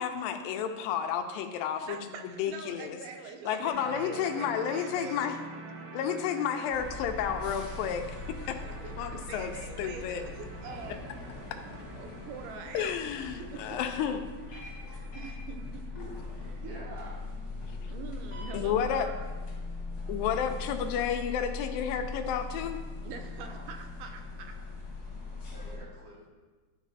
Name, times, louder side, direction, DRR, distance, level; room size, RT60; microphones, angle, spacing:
voice 1, 0.0-2.0 2.2-3.0 3.5-5.4 5.9-8.2 8.5-10.2 12.7-14.2 14.5-14.6 17.7-17.9 18.5-19.1 20.1-22.8, left 8 dB, 80° left, 6 dB, 2.3 m, -31 dB
voice 2, 1.8-5.3 8.3-11.1 11.9-13.0 13.4-13.8 14.8-16.6 17.9-19.2 23.0-24.6, right 5 dB, 85° right, 5 dB, 2.6 m, -44 dB
sound 1, 3.7-17.2, right 3 dB, 70° right, 1.8 m, -48 dB
sound 2, 6.7-25.8, left 3 dB, 40° left, 1.5 m, -40 dB
voice 3, 16.6-17.2 23.4-23.7 25.4-26.3, right 3 dB, 55° right, -4 dB, 1.9 m, -47 dB
12.0 x 4.4 x 4.1 m, 1.3 s
omnidirectional pair, 4.2 m